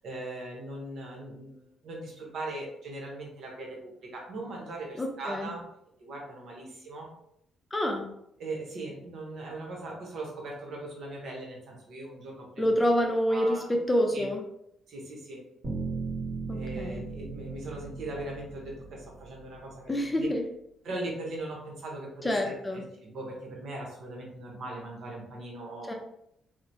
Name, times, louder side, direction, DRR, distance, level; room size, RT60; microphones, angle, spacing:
voice 1, 0.0-5.6 6.0-7.1 8.4-12.6 13.3-13.7 14.1-14.3 14.9-15.4 16.5-20.3 20.8-25.9, right 2 dB, 70° right, -1 dB, 0.9 m, -39 dB
voice 2, 5.0-5.5 7.7-8.1 12.6-14.4 16.5-17.0 19.9-20.4 22.2-22.8 25.9-26.0, equal, 20° left, 2 dB, 0.5 m, -27 dB
sound 1, 15.6-19.7, right 4 dB, 40° right, 1.5 m, -37 dB
2.9 x 2.1 x 2.6 m, 0.75 s
cardioid pair, 90°, 0 cm